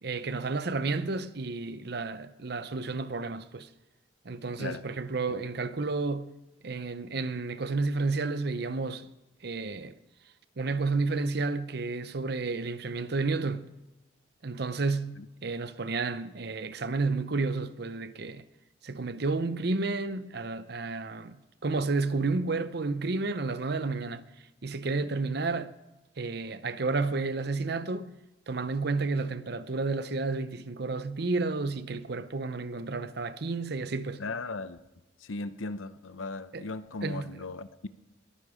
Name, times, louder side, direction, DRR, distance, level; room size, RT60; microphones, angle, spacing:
voice 1, 0.0-3.7 4.2-6.4 6.6-9.1 9.4-9.9 10.6-13.7 14.4-18.4 18.8-21.4 21.6-24.2 24.6-25.7 26.2-28.1 28.5-34.2 36.5-36.6 37.0-37.3, right 3 dB, 55° right, 0.7 m, -31 dB
voice 2, 34.2-34.8 35.2-37.9, left 3 dB, 90° left, 0.8 m, -37 dB
21.5 x 10.0 x 5.0 m
head